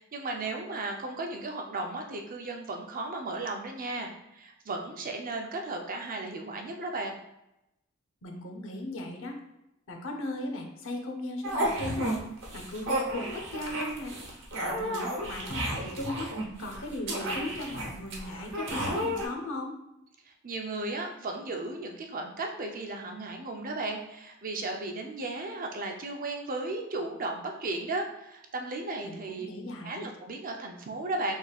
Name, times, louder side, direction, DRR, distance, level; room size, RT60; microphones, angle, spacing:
voice 1, 0.0-7.1 20.4-29.5 29.8-31.3, right 2 dB, 40° right, 2 dB, 0.6 m, -35 dB
voice 2, 8.2-9.4 9.9-12.2 12.5-14.1 14.6-16.3 16.6-19.8 29.0-30.1, left 1 dB, 65° left, 3 dB, 0.8 m, -37 dB
sound 1, 11.4-12.2 12.4-19.3, right 1 dB, 60° right, 1.0 m, -32 dB
5.0 x 3.6 x 2.4 m, 0.89 s
head